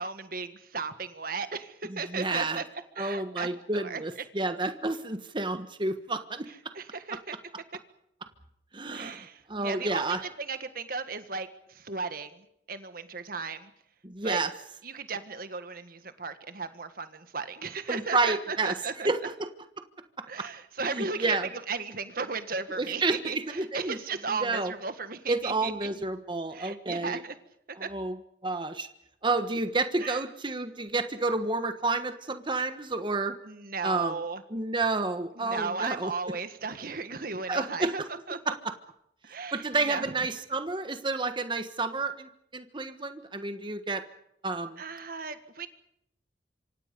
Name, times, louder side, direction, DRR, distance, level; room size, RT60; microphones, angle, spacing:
voice 1, 0.0-2.6 3.0-3.5 3.7-4.2 6.7-7.4 8.9-13.7 14.2-14.4 14.8-19.1 20.3-25.9 26.5-27.4 27.8-27.9 30.0-30.2 33.4-34.4 35.4-38.0 38.3-38.5 39.2-40.3 44.8-45.7, right 4 dB, 55° right, 10 dB, 1.7 m, -36 dB
voice 2, 1.9-2.6 3.0-6.5 8.7-10.2 14.0-14.5 17.9-18.7 19.0-19.5 20.9-21.5 22.8-23.2 23.5-24.0 24.3-24.7 25.3-27.2 27.7-28.2 28.4-28.9 29.2-33.3 33.8-34.1 34.5-36.1 37.5-38.1 38.5-38.7 39.5-44.0 44.4-44.8, right 3 dB, 25° right, 9 dB, 1.3 m, -30 dB
26.5 x 25.0 x 5.3 m, 0.77 s
head